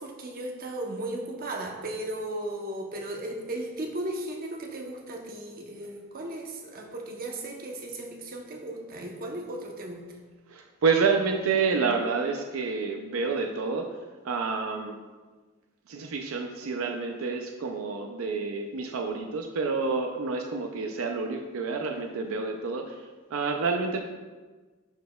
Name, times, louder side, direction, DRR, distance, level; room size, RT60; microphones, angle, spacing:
voice 1, 0.0-10.0, right 1 dB, 45° right, 1 dB, 0.8 m, -36 dB
voice 2, 10.5-13.9 14.2-15.0 15.9-23.0 23.3-24.0, right 4 dB, 75° right, 3 dB, 0.5 m, -28 dB
11.5 x 4.1 x 2.3 m, 1.3 s
head